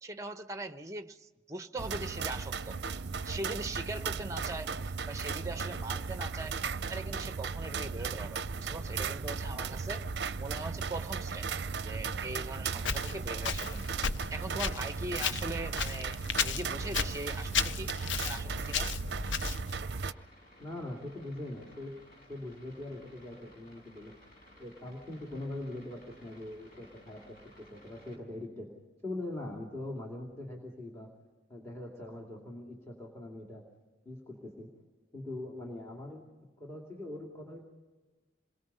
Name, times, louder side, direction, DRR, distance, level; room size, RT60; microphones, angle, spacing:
voice 1, 0.0-2.8 3.2-6.6 6.9-10.1 10.4-11.5 11.8-13.9 14.3-18.0 18.2-18.9, right 2 dB, 15° right, 9 dB, 0.8 m, -41 dB
sound 1, 1.8-20.1, right 5 dB, 60° right, 0.6 m, -36 dB
sound 2, 10.6-28.2, left 1 dB, 50° left, 6.0 m, -58 dB
Walk footsteps, 12.8-19.8, left 6 dB, 80° left, 0.6 m, -35 dB
voice 2, 20.6-21.9 22.2-24.2 24.6-28.7 29.0-31.1 31.5-33.6 34.0-34.7 35.1-36.2 36.6-37.6, left 1 dB, 15° left, 0 dB, 2.6 m, -42 dB
28.0 x 21.5 x 5.5 m, 1.3 s
head